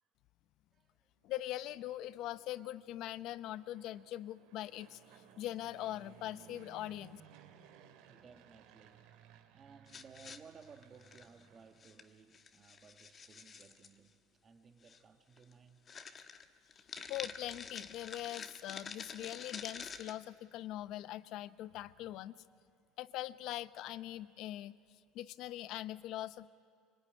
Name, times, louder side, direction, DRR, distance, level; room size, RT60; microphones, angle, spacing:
voice 1, 1.2-7.2 17.1-22.4 23.0-24.8 25.1-26.5, left 14 dB, 55° left, 0.8 m, -42 dB
Fixed-wing aircraft airplane, 1.2-12.3, right 8 dB, 75° right, 2.3 m, -61 dB
voice 2, 8.0-9.1 9.5-15.9, right 5 dB, 25° right, 1.4 m, -59 dB
sound 1, 9.9-11.4 11.8-12.0 12.3-13.9 14.8-15.0 15.4-15.5 15.9-20.1, left 6 dB, 25° left, 1.2 m, -48 dB
25.0 x 25.0 x 9.7 m
cardioid pair, 140°, 0 cm